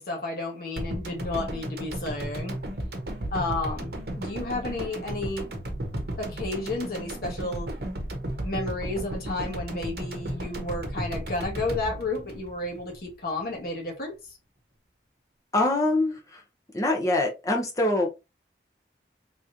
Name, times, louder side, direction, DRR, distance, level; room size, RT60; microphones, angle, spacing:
voice 1, 0.0-2.6 3.3-5.5 6.2-7.7 8.4-14.1, left 2 dB, 55° left, 1.3 m, -32 dB
sound 1, 0.8-13.1 13.4-13.5, right 1 dB, 55° right, 0.9 m, -34 dB
voice 2, 15.5-16.4 16.7-18.1, left 2 dB, 20° left, 0.7 m, -24 dB
3.5 x 3.1 x 2.5 m
head